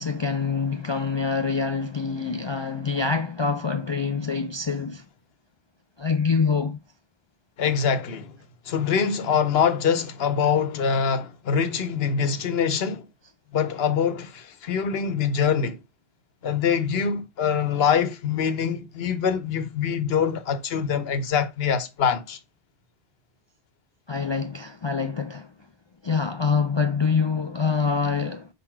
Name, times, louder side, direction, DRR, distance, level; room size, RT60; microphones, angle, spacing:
voice 1, 0.0-5.0 6.0-6.8 24.1-25.5 26.0-28.5, left 5 dB, 45° left, 0.4 m, -25 dB
voice 2, 7.6-8.4 8.7-13.1 13.5-15.8 16.4-22.4, left 7 dB, 75° left, 1.0 m, -24 dB
5.6 x 3.9 x 4.4 m
omnidirectional pair, 1.0 m